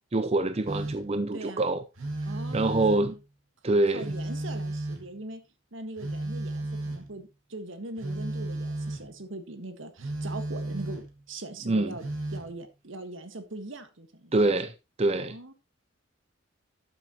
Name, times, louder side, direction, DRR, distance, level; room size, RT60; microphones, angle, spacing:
voice 1, 0.1-1.8 2.2-3.2 3.6-4.1 11.7-11.9 14.3-14.7 15.0-15.4, right 2 dB, 30° right, 0.6 m, -25 dB
Telephone, 0.7-1.2 2.0-3.2 4.0-5.2 6.0-7.2 8.0-9.1 10.0-11.2 12.0-12.5, right 2 dB, 85° right, 2.6 m, -34 dB
voice 2, 1.3-1.7 2.3-3.2 3.7-5.4 5.7-12.0 12.3-14.6 15.1-15.5, right 2 dB, 70° right, 1.7 m, -41 dB
12.5 x 7.7 x 3.0 m
head